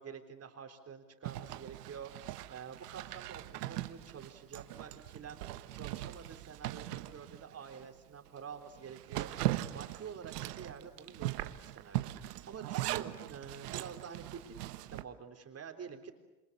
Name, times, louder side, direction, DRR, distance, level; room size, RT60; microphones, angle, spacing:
voice 1, 0.0-2.1 2.5-5.4 5.7-16.2, right 6 dB, 30° right, 5 dB, 3.6 m, -48 dB
Zipper (clothing), 1.2-7.9 8.3-8.4 8.7-15.0, right 16 dB, 75° right, 1.4 m, -40 dB
28.5 x 26.5 x 6.8 m, 1.1 s
hypercardioid pair, 90°, 47 cm